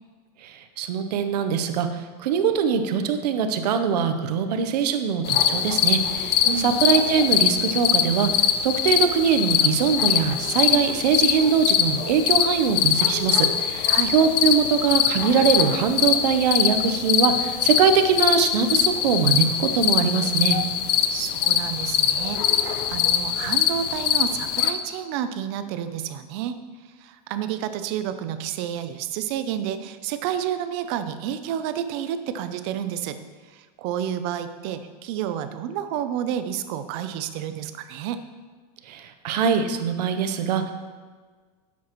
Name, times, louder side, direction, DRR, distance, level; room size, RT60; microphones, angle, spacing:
voice 1, 0.4-20.6 38.9-40.7, right 6 dB, 75° right, 8 dB, 0.8 m, -22 dB
sound 1, 5.2-24.7, left 9 dB, 75° left, 0.7 m, -23 dB
voice 2, 6.5-6.8 13.9-14.1 21.1-26.6 26.8-33.2 33.5-38.2, right 10 dB, 40° right, 10 dB, 0.5 m, -30 dB
10.0 x 7.2 x 3.0 m, 1.5 s
supercardioid pair, 170°, 21 cm